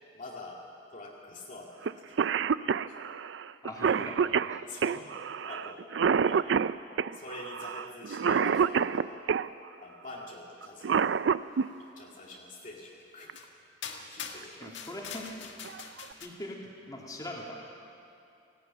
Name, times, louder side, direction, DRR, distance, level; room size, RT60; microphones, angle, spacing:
voice 1, 0.1-2.3 2.9-3.0 3.8-4.3 4.7-5.0 5.5-5.8 6.2-6.8 7.1-9.2 9.8-11.1 12.0-13.3 14.1-14.8, left 2 dB, 45° left, -3 dB, 2.2 m, -46 dB
Cough, 1.9-2.0 2.2-9.5 10.6-11.7 13.3-13.4 14.4-14.7 15.2-15.3 15.7-16.1, right 6 dB, 75° right, 0.4 m, -27 dB
voice 2, 3.6-4.6 4.9-5.0 14.6-15.4 16.2-17.6, left 1 dB, 20° left, -2 dB, 2.8 m, -42 dB
sound 1, 12.6-12.7 13.3-13.5 13.8-16.3, left 6 dB, 80° left, 1.7 m, -43 dB
18.5 x 15.5 x 9.0 m, 2.6 s
head